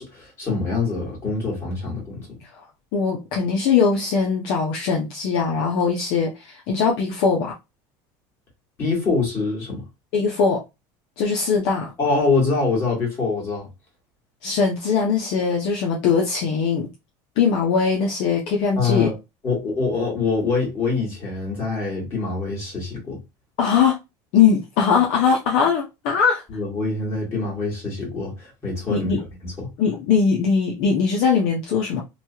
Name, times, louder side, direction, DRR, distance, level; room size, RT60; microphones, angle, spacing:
voice 1, 0.0-2.4 8.8-9.8 12.0-13.7 18.8-19.1 19.4-23.2 26.5-29.1 29.4-29.7, left 4 dB, 25° left, 1.6 m, -24 dB
voice 2, 2.9-7.5 10.1-10.6 11.2-11.9 14.4-16.9 17.4-19.1 23.6-24.0 24.3-26.4 28.9-29.2 29.8-32.0, left 6 dB, 55° left, 0.7 m, -20 dB
3.0 x 2.3 x 2.7 m
cardioid pair, 170°, 11 cm